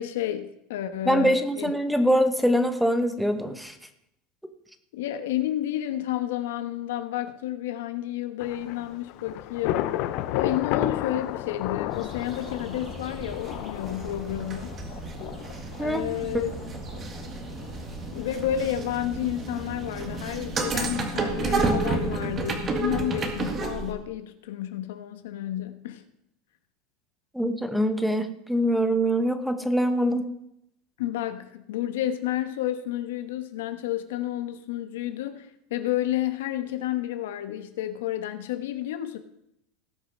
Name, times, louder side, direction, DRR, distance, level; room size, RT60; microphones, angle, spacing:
voice 1, 0.0-1.7 4.9-9.9 10.3-14.8 15.8-16.5 18.1-26.0 31.0-39.2, left 12 dB, 85° left, 9 dB, 1.1 m, -31 dB
voice 2, 1.1-3.8 15.8-16.0 27.3-30.2, equal, ahead, 8 dB, 0.9 m, -24 dB
Thunder / Rain, 8.4-22.0, left 13 dB, 50° left, 0.6 m, -35 dB
sound 1, 11.9-23.9, right 3 dB, 25° right, 1.8 m, -31 dB
17.5 x 6.5 x 5.4 m, 0.81 s
supercardioid pair, 150°, 0 cm